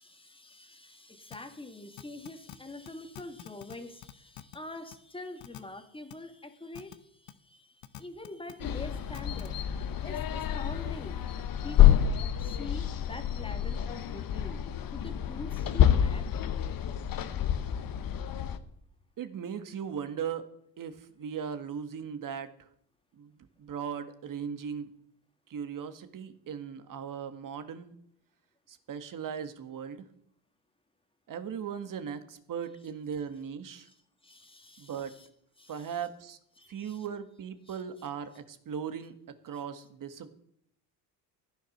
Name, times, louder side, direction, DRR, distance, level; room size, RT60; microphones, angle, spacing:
voice 1, 0.0-11.2 11.6-14.6 14.9-16.3 33.9-34.0 34.2-35.3 35.6-35.9 36.6-37.0 37.7-37.8, left 2 dB, 10° left, 7 dB, 2.0 m, -45 dB
sound 1, 1.3-1.4 2.0-2.6 2.9-3.0 3.2-3.8 4.0-4.6 4.9-5.0 5.4-5.6 6.1-6.2 6.7-7.0 7.3-7.4 7.8-8.5 9.1-9.5, left 14 dB, 75° left, 1.1 m, -45 dB
sound 2, 8.6-18.6, left 10 dB, 50° left, 1.2 m, -27 dB
voice 2, 19.2-20.5 20.8-22.7 23.1-24.9 25.5-28.0 28.7-30.1 31.3-33.9 34.8-35.1 35.7-36.4 36.7-39.1 39.4-40.3, right 7 dB, 45° right, 10 dB, 1.7 m, -38 dB
15.0 x 10.5 x 6.6 m, 0.70 s
cardioid pair, 100°, 43 cm